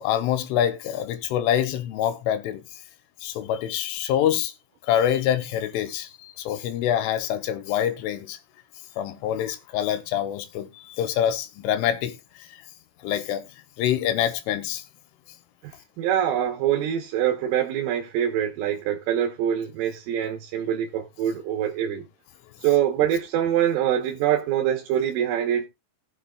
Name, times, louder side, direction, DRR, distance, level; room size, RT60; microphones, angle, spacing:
voice 1, 0.0-2.6 3.2-4.5 4.9-8.4 9.0-12.1 12.4-12.5 13.0-13.5 13.8-14.8, left 10 dB, 80° left, 3.3 m, -25 dB
voice 2, 15.6-22.1 22.6-25.7, right 10 dB, 80° right, 3.6 m, -24 dB
19.0 x 7.4 x 2.4 m
omnidirectional pair, 5.8 m